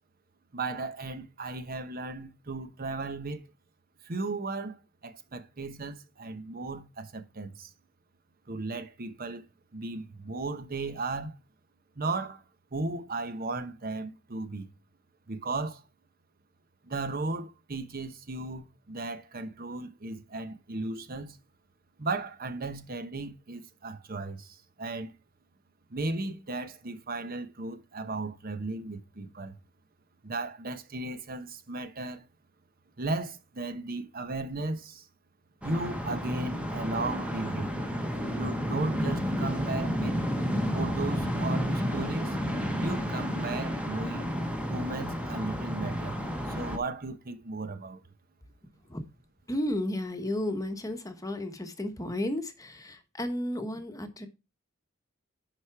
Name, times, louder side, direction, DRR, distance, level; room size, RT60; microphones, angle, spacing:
voice 1, 0.5-3.4 4.0-7.7 8.5-9.4 9.7-11.3 12.0-12.4 12.7-14.7 15.3-15.8 16.8-21.4 22.0-25.1 25.9-29.6 30.2-32.3 33.0-35.1 35.6-37.7 38.4-40.2 40.7-42.4 42.8-44.3 44.7-48.0, right 3 dB, 45° right, 1.0 m, -35 dB
sound 1, 35.6-46.8, equal, 5° right, 1.2 m, -31 dB
voice 2, 49.5-54.3, left 1 dB, 15° left, 1.1 m, -33 dB
10.5 x 4.9 x 4.6 m
head